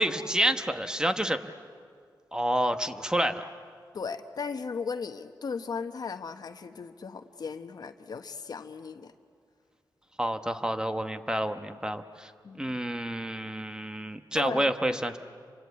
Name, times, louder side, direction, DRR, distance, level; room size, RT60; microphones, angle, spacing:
voice 1, 0.0-1.4 2.3-3.4 10.2-12.3 12.6-15.2, right 1 dB, 10° right, 8 dB, 1.0 m, -28 dB
voice 2, 3.9-9.1 12.4-12.8 14.3-15.0, left 5 dB, 60° left, 8 dB, 1.2 m, -37 dB
29.0 x 25.0 x 8.1 m, 2.1 s
wide cardioid pair, 105°, 8 cm